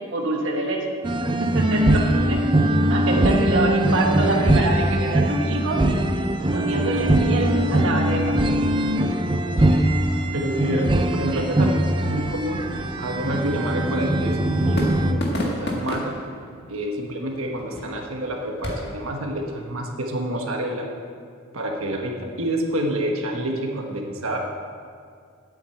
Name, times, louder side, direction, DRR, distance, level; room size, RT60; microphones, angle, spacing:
voice 1, 0.1-0.8 1.4-2.4 2.9-5.8 6.5-8.4 8.8-8.9 11.3-11.5, right 2 dB, 65° right, 0 dB, 1.2 m, -26 dB
sound 1, 1.0-15.1, right 1 dB, 25° right, 0.5 m, -21 dB
voice 2, 10.3-12.7 13.0-16.1 16.7-20.9 21.5-24.4, right 1 dB, 85° right, 1 dB, 1.3 m, -28 dB
sound 2, 12.4-19.0, left 1 dB, 50° left, 1.8 m, -34 dB
8.8 x 7.9 x 7.8 m, 2.2 s
head